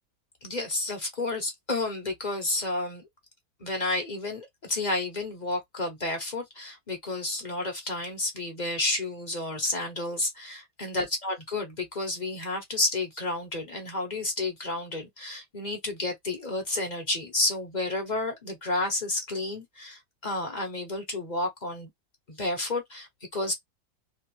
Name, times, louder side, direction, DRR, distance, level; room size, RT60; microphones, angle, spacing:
voice 1, 0.4-3.1 3.6-21.9 22.3-23.5, left 2 dB, 30° left, 0.8 m, -31 dB
3.2 x 2.5 x 3.0 m
omnidirectional pair, 2.1 m